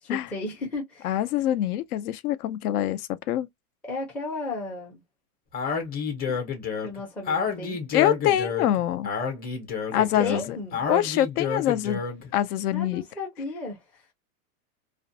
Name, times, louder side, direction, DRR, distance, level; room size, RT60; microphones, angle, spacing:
voice 1, 0.0-1.2 3.8-5.0 6.8-7.8 9.9-10.8 12.7-14.0, left 2 dB, 5° left, 0.4 m, -34 dB
voice 2, 1.0-3.5 6.3-6.4 7.9-9.1 9.9-10.6 10.9-12.0 12.3-13.0, left 12 dB, 70° left, 0.6 m, -25 dB
Speech, 5.5-12.3, left 6 dB, 20° left, 0.7 m, -30 dB
2.4 x 2.1 x 2.6 m
supercardioid pair, 135°, 46 cm